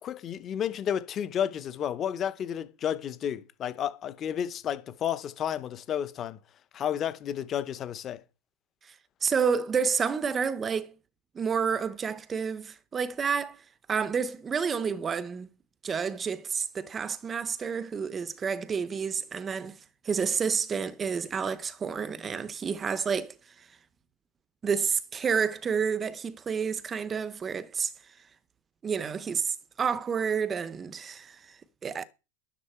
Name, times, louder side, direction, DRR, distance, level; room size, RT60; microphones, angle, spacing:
voice 1, 0.0-6.4 6.7-8.2, left 9 dB, 20° left, 0.8 m, -31 dB
voice 2, 9.2-10.9 11.3-13.6 13.9-15.5 15.8-19.8 20.0-23.7 24.6-27.9 28.8-32.0, right 6 dB, 15° right, 0.7 m, -30 dB
11.5 x 10.0 x 4.4 m
supercardioid pair, 175°, 0 cm